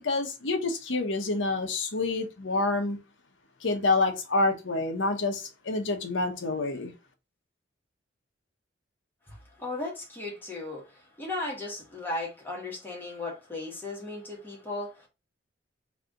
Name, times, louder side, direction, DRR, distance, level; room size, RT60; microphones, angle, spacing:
voice 1, 0.0-3.0 3.6-6.9, left 3 dB, 75° left, 1.1 m, -27 dB
voice 2, 9.3-15.1, left 2 dB, 10° left, 1.7 m, -36 dB
3.4 x 3.4 x 3.8 m
head